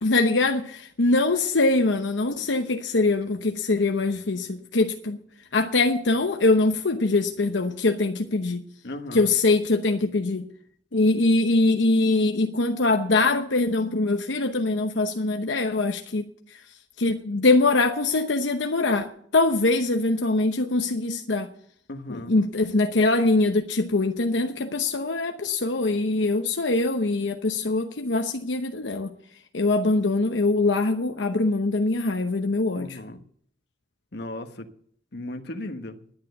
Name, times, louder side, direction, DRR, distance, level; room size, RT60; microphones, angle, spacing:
voice 1, 0.0-5.2 5.5-8.6 9.1-10.4 10.9-16.2 17.0-21.5 22.1-29.1 29.5-32.9, left 2 dB, 80° left, 0.9 m, -23 dB
voice 2, 8.8-9.3 21.9-22.4 32.7-33.2 34.1-34.7 35.1-36.0, left 1 dB, 60° left, 1.3 m, -36 dB
11.0 x 10.5 x 6.7 m
head